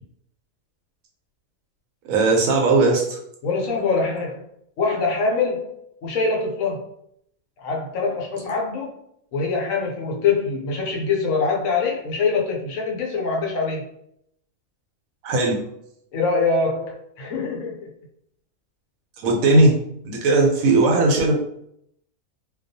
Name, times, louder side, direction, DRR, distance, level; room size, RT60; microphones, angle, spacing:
voice 1, 2.0-3.2 15.2-15.7 19.2-19.8 20.0-21.4, right 2 dB, 75° right, 0 dB, 1.0 m, -18 dB
voice 2, 3.4-4.4 4.8-5.7 6.0-6.8 7.6-9.0 9.3-13.8 16.1-17.9 20.3-20.4, left 4 dB, 75° left, -1 dB, 0.9 m, -24 dB
2.3 x 2.3 x 2.6 m, 0.73 s
omnidirectional pair, 1.5 m